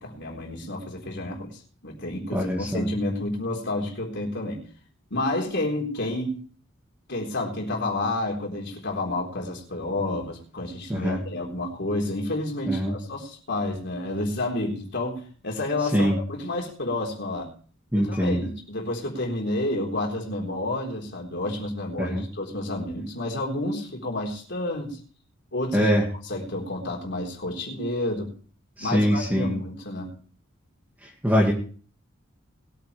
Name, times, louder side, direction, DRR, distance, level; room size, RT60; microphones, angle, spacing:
voice 1, 0.0-4.6 5.1-6.4 7.1-17.5 17.9-25.0 25.5-25.9 26.3-28.3 28.8-30.1, left 1 dB, 60° left, 0 dB, 4.0 m, -30 dB
voice 2, 2.3-2.9 10.9-11.2 12.7-12.9 15.9-16.2 17.9-18.5 22.0-22.2 25.7-26.0 28.8-29.6 31.0-31.5, equal, 10° right, -2 dB, 2.2 m, -23 dB
21.0 x 9.1 x 3.3 m, 0.41 s
head